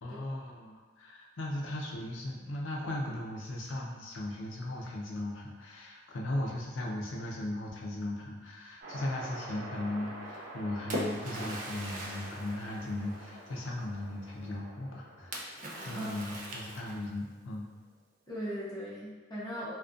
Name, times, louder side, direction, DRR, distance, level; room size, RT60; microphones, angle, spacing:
voice 1, 0.0-15.5 15.8-17.7, left 1 dB, 85° left, -1 dB, 0.5 m, -37 dB
sound 1, 8.8-16.2, right 1 dB, 60° right, 0.7 m, -47 dB
Splash splatter, 10.3-13.5 15.3-17.2, right 1 dB, 45° right, 0.3 m, -40 dB
voice 2, 15.7-16.2 18.3-19.7, equal, 20° left, -10 dB, 0.6 m, -38 dB
2.4 x 2.2 x 2.4 m, 1.3 s
head